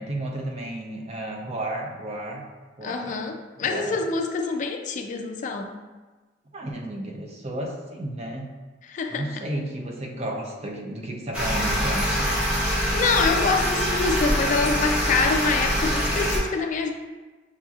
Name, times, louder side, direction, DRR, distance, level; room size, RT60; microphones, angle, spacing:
voice 1, 0.0-2.4 2.8-3.1 3.6-4.0 6.5-8.5 9.1-12.4, right 1 dB, 35° right, 0 dB, 0.6 m, -33 dB
voice 2, 2.8-5.8 8.8-9.4 12.9-16.9, left 4 dB, 40° left, 4 dB, 0.3 m, -26 dB
sound 1, 11.3-16.4, equal, 5° right, 1.0 m, -24 dB
6.0 x 2.8 x 2.4 m, 1.3 s
head